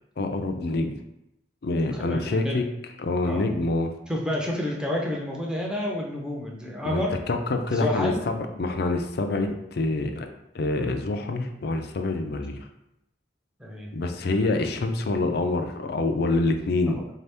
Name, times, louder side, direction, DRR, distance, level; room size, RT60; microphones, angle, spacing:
voice 1, 0.2-1.0 1.6-2.6 3.0-3.9 6.8-10.3 10.5-12.7 13.9-17.0, left 2 dB, 60° left, 6 dB, 0.4 m, -26 dB
voice 2, 1.9-2.6 3.2-3.4 4.1-7.1 7.7-8.2 13.6-13.9 16.9-17.0, left 1 dB, 5° right, -2 dB, 0.6 m, -29 dB
4.0 x 2.8 x 3.4 m, 0.84 s
head